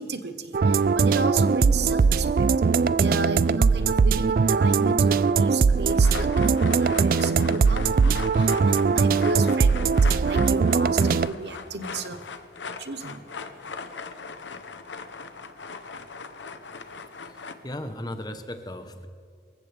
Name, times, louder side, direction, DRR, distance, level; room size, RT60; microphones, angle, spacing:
voice 1, 0.0-2.4 3.0-12.2 12.8-13.2, right 3 dB, 70° right, 9 dB, 1.1 m, -33 dB
sound 1, 0.5-11.3, right 5 dB, 50° right, 0.3 m, -20 dB
sound 2, 5.9-17.5, left 4 dB, 90° left, 1.0 m, -39 dB
voice 2, 17.2-19.1, left 1 dB, 20° left, 8 dB, 1.0 m, -37 dB
26.0 x 14.5 x 3.5 m, 2.4 s
head